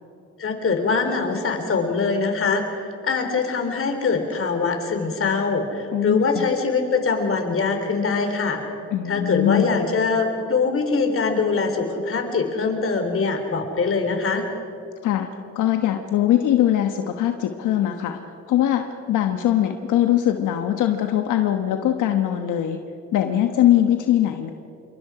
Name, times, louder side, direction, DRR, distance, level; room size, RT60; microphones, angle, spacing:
voice 1, 0.4-8.6 9.1-14.5, left 4 dB, 45° left, 5 dB, 3.7 m, -23 dB
voice 2, 5.9-6.5 8.9-9.7 15.0-15.3 15.5-18.2 18.5-22.8 23.1-24.5, left 12 dB, 85° left, 6 dB, 1.2 m, -21 dB
27.5 x 23.5 x 5.0 m, 2.7 s
cardioid pair, 90°, 30 cm